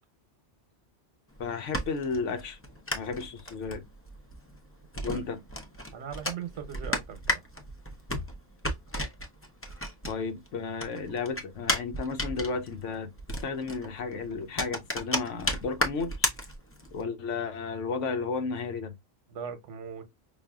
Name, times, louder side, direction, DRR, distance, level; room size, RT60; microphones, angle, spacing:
sound 1, 1.3-10.5 10.8-17.0, left 1 dB, 15° left, 0.4 m, -33 dB
voice 1, 1.4-2.6 2.9-3.8 5.0-5.4 10.1-13.1 13.4-16.3 16.9-18.9, left 4 dB, 85° left, 1.1 m, -33 dB
voice 2, 5.9-7.4 19.3-20.0, right 8 dB, 85° right, 1.1 m, -39 dB
5.3 x 2.4 x 2.2 m
omnidirectional pair, 1.2 m